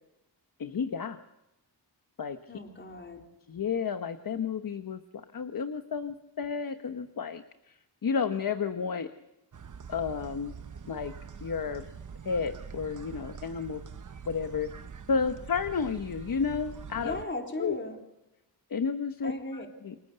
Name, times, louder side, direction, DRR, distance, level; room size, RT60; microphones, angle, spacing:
voice 1, 0.6-1.2 2.2-2.4 3.5-7.7 8.0-9.1 9.9-10.5 10.9-11.1 11.4-11.8 12.2-13.8 14.3-14.7 15.1-17.2 17.6-17.8 18.7-19.3 19.8-19.9, left 5 dB, 55° left, 9 dB, 1.1 m, -31 dB
voice 2, 2.5-3.3 17.0-18.0 19.2-19.7, left 2 dB, 30° left, 2 dB, 3.9 m, -37 dB
sound 1, 9.5-17.3, right 6 dB, 45° right, 1.0 m, -44 dB
29.0 x 25.5 x 6.8 m, 0.95 s
wide cardioid pair, 130°, 41 cm